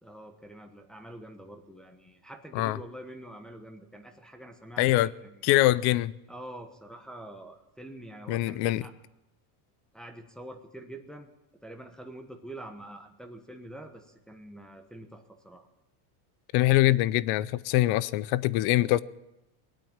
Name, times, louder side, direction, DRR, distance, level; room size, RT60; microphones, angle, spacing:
voice 1, 0.0-5.4 6.3-8.9 9.9-11.3 11.6-15.7, right 1 dB, ahead, 1.0 m, -45 dB
voice 2, 4.8-5.1 5.4-6.1 8.3-8.8 16.5-19.0, left 16 dB, 55° left, 0.6 m, -23 dB
21.0 x 9.0 x 7.3 m
supercardioid pair, 135°, 47 cm